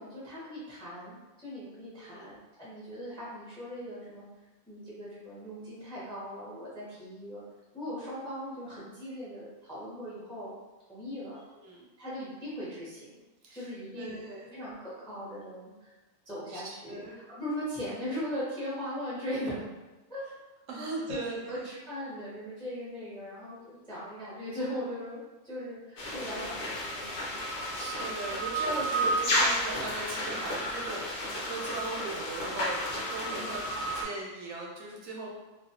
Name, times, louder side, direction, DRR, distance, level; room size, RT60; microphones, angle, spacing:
voice 1, 0.0-4.2 4.7-7.4 7.7-10.5 10.9-11.4 12.0-14.2 14.5-15.9 16.3-17.0 17.4-19.6 20.1-20.2 20.8-25.2 25.4-27.1 27.4-27.8 33.3-33.5, equal, 5° left, -8 dB, 0.4 m, -39 dB
voice 2, 2.0-2.3 11.6-11.9 13.4-13.7 14.0-14.5 16.5-17.2 20.7-21.6 27.4-35.3, right 3 dB, 70° right, -2 dB, 0.9 m, -39 dB
sound 1, 26.0-34.0, equal, 60° left, 0.6 m, -32 dB
2.4 x 2.1 x 2.7 m, 1.1 s
omnidirectional pair, 1.5 m